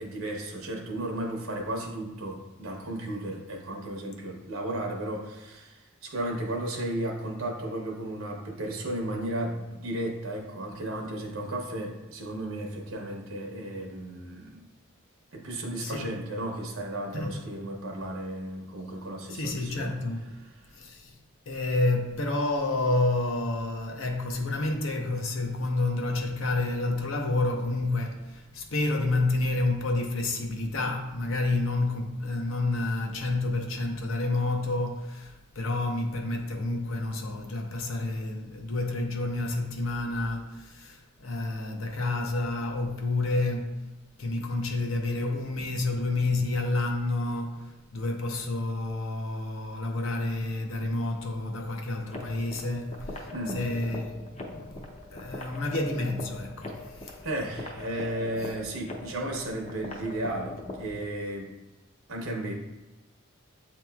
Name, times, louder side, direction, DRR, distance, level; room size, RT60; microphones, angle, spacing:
voice 1, 0.0-14.6 15.3-20.0 53.3-53.6 57.2-61.5 62.1-62.5, right 1 dB, 75° right, 0.8 m, -34 dB
voice 2, 15.8-16.1 17.1-17.4 19.3-20.4 20.7-21.2 21.5-43.9 44.2-57.2 58.4-58.5, left 2 dB, 70° left, 0.6 m, -29 dB
sound 1, 52.1-61.1, left 2 dB, 30° left, 0.5 m, -41 dB
7.9 x 2.9 x 2.3 m
head